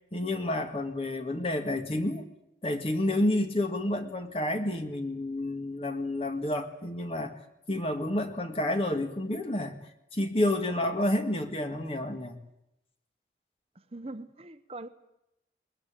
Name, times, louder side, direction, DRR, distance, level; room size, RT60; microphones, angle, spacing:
voice 1, 0.1-2.3 2.6-7.3 7.7-9.8 10.1-12.4, left 1 dB, 35° left, 6 dB, 1.9 m, -29 dB
voice 2, 13.8-14.9, right 2 dB, 35° right, 11 dB, 0.8 m, -42 dB
21.0 x 20.5 x 8.9 m, 0.85 s
head